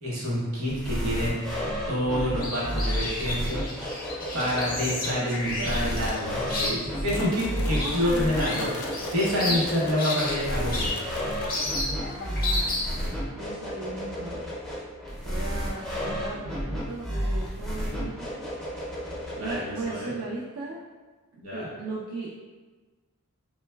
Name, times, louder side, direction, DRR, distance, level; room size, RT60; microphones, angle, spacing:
voice 1, 0.0-1.3 1.9-4.1 4.3-8.7 9.1-11.1 19.4-20.1 21.4-21.7, left 1 dB, 70° right, -6 dB, 0.8 m, -28 dB
sound 1, 0.7-19.9, equal, ahead, 0.4 m, -32 dB
sound 2, 2.2-13.1, left 2 dB, 40° left, 0.6 m, -33 dB
voice 2, 5.2-5.7 7.7-9.0 9.5-9.7 12.0-14.5 15.2-18.5 19.4-20.8 21.3-22.4, right 3 dB, 90° right, -6 dB, 0.4 m, -37 dB
sound 3, 7.1-12.0, left 3 dB, 80° left, 0.3 m, -41 dB
3.0 x 2.0 x 2.2 m, 1.3 s
head